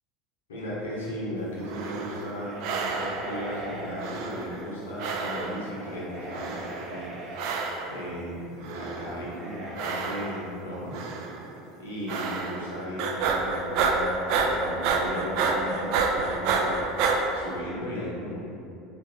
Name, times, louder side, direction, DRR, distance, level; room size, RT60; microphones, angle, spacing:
voice 1, 0.5-11.1 11.8-18.4, equal, 70° left, -6 dB, 0.9 m, -36 dB
sound 1, 1.6-2.3 2.6-3.4 4.0-4.7 5.0-5.7 6.3-7.0 7.4-8.0 8.6-9.3 9.8-10.5 10.9-11.4 12.1-12.7 13.0-17.2, right 4 dB, 55° right, 0.3 m, -29 dB
sound 2, 2.3-4.0 5.5-7.7 9.3-9.7, right 1 dB, 30° right, 1.0 m, -40 dB
4.2 x 2.6 x 2.7 m, 2.6 s
figure-of-eight pair, 70°, 0 cm